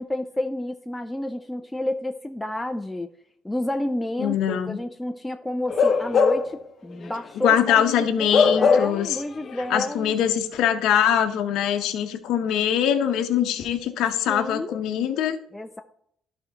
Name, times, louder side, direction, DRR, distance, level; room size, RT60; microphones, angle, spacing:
voice 1, 0.0-3.1 3.4-10.1 14.3-14.8 15.5-15.8, left 1 dB, 10° left, 5 dB, 0.5 m, -30 dB
voice 2, 4.2-4.8 7.4-9.2 9.7-15.4, left 9 dB, 80° left, 5 dB, 0.8 m, -23 dB
Bark / Livestock farm animals working animals, 5.7-6.6 7.0-7.2 8.3-9.1 9.4-9.6, left 5 dB, 45° left, 0.9 m, -20 dB
12.0 x 4.4 x 3.9 m, 0.70 s
supercardioid pair, 80°, 0 cm